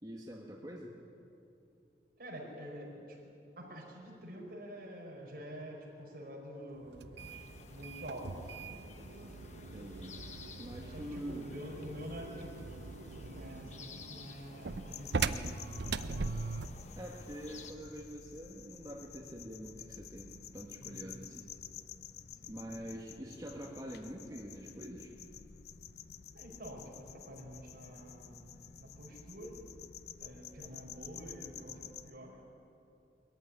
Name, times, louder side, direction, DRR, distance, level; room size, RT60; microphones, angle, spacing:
voice 1, 0.0-1.0 9.7-10.2 10.6-11.5 17.0-21.5 22.5-25.1, equal, 20° right, -2 dB, 1.4 m, -45 dB
voice 2, 2.2-3.2 3.6-7.4 7.7-8.9 10.9-16.0 20.8-21.2 22.4-22.8 26.3-29.7 30.2-32.4, equal, 55° right, -1 dB, 5.2 m, -48 dB
sound 1, 6.9-16.8, right 4 dB, 75° right, 0.7 m, -41 dB
sound 2, 7.2-17.7, left 3 dB, 40° left, 1.2 m, -53 dB
sound 3, 14.9-32.1, left 8 dB, 65° left, 0.6 m, -51 dB
21.5 x 14.5 x 9.8 m, 2.8 s
head